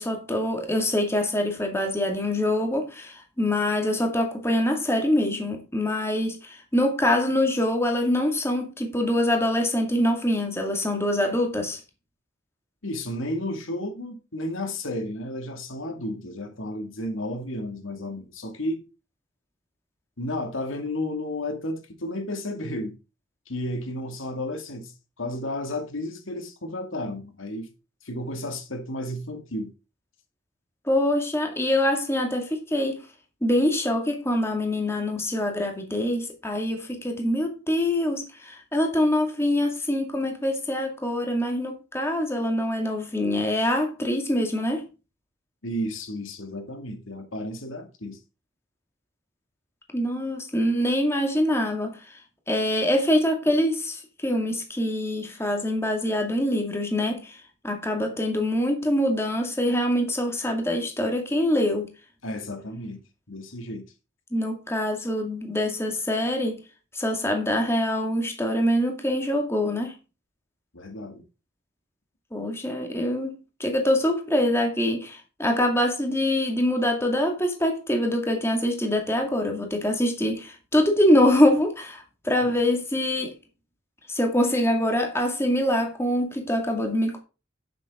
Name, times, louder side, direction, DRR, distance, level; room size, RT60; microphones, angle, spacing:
voice 1, 0.0-11.8 30.9-33.0 33.4-44.8 49.9-52.2 52.5-57.4 57.6-61.9 64.3-66.6 66.9-69.9 72.3-83.3 84.1-87.2, left 1 dB, 10° left, 2.1 m, -24 dB
voice 2, 12.8-18.8 20.2-23.0 23.5-27.7 28.0-29.7 45.6-48.2 62.2-63.0 63.3-63.8 70.7-71.2 82.4-82.5, left 1 dB, 85° left, 2.3 m, -32 dB
10.5 x 7.5 x 3.7 m
head